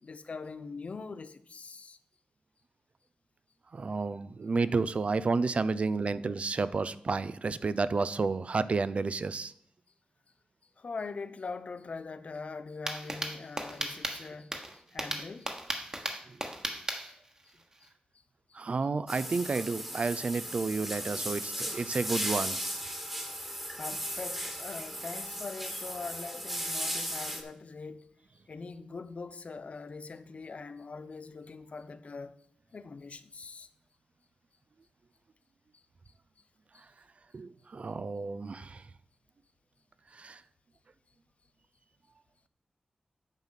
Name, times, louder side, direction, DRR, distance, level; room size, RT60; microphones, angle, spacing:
voice 1, 0.0-2.0 10.8-15.8 17.1-17.2 17.4-17.5 17.8-17.9 23.1-23.2 23.8-28.1 28.5-32.3 32.7-33.7 36.7-36.8, left 4 dB, 50° left, 0.6 m, -42 dB
voice 2, 3.7-9.5 16.3-16.4 18.5-22.6 37.3-38.8 40.1-40.4, right 4 dB, 50° right, 0.4 m, -31 dB
sound 1, 12.9-17.9, right 1 dB, 25° right, 1.2 m, -36 dB
sound 2, 19.1-27.4, equal, 5° right, 1.4 m, -36 dB
9.0 x 5.8 x 5.6 m
wide cardioid pair, 110°, 3 cm